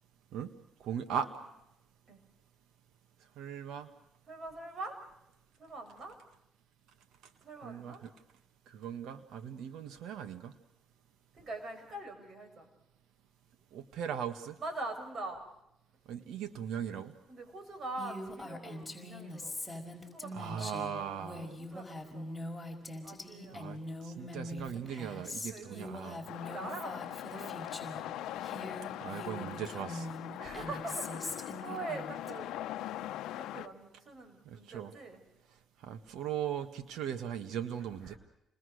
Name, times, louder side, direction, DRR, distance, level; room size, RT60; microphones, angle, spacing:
voice 1, 0.8-1.3 3.4-3.9 7.6-8.1 8.7-10.5 13.7-14.6 16.1-17.1 20.3-21.5 23.5-26.2 29.0-30.1 34.4-34.9 35.8-38.1, right 8 dB, 85° right, 7 dB, 1.6 m, -39 dB
voice 2, 4.3-5.0 5.6-6.2 7.4-8.0 11.3-12.7 14.6-15.4 17.3-19.7 20.0-22.5 23.0-24.0 25.4-28.6 30.4-32.5 32.8-35.2 38.0-38.2, right 2 dB, 50° right, 5 dB, 6.6 m, -44 dB
Female speech woman speaking, 18.0-28.1 28.4-32.3, left 1 dB, 10° left, 5.2 m, -43 dB
sound 1, 26.3-33.7, left 13 dB, 90° left, 0.8 m, -41 dB
29.5 x 21.0 x 6.5 m, 0.83 s
cardioid pair, 90°, 0 cm